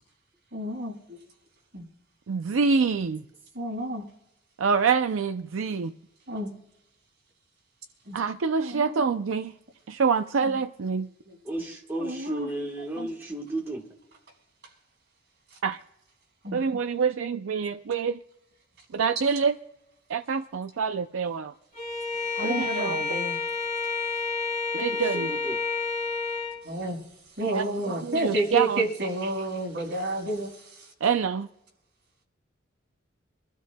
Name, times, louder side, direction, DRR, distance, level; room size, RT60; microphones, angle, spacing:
voice 1, 0.5-1.2 1.7-1.8 3.5-4.0 5.7-5.9 6.3-6.5 8.0-8.2 8.6-9.0 10.4-10.6 11.3-11.6 12.0-12.5 12.9-13.1 15.5-15.6 16.4-16.6 22.3-23.4 26.6-27.0 27.4-30.9, right 1 dB, 55° right, 5.0 m, -31 dB
voice 2, 2.3-3.2 4.6-5.9 8.1-9.5 9.9-11.1 15.6-15.8 16.5-18.2 18.9-19.6 20.1-21.5 22.4-23.0 24.7-25.3 27.5-28.8 31.0-31.5, right 5 dB, 80° right, 0.5 m, -26 dB
voice 3, 11.4-13.8 24.9-25.6, right 1 dB, 10° right, 1.3 m, -34 dB
Bowed string instrument, 21.7-26.6, left 4 dB, 35° left, 6.4 m, -30 dB
25.5 x 13.0 x 2.2 m
head